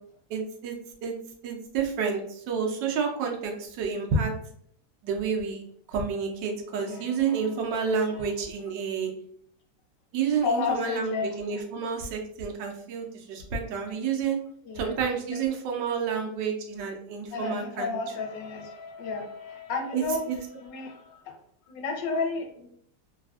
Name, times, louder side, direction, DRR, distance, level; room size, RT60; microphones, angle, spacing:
voice 1, 0.3-1.2 1.4-4.3 5.0-5.6 5.9-9.1 10.1-14.4 14.7-18.0 19.9-20.4, right 5 dB, 85° right, 2 dB, 1.3 m, -29 dB
voice 2, 6.7-8.2 10.4-11.6 14.6-15.0 17.3-20.3 20.6-21.3 21.7-22.7, left 4 dB, 80° left, 3 dB, 1.3 m, -33 dB
3.3 x 2.4 x 2.3 m, 0.65 s
omnidirectional pair, 1.9 m